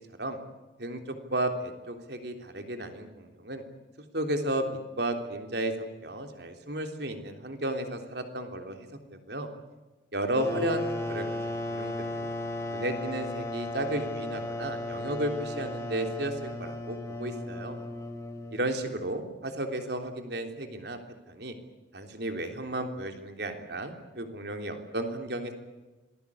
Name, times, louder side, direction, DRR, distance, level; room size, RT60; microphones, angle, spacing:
voice 1, 1.3-3.6 4.1-4.7 5.0-9.0 9.3-9.5 10.1-12.3 12.7-17.8 18.5-21.0 21.3-21.5 21.9-25.5, right 1 dB, 65° right, 5 dB, 3.5 m, -33 dB
sound 1, 10.3-18.8, left 1 dB, 15° left, 3.0 m, -35 dB
27.0 x 20.5 x 8.5 m, 1.1 s
head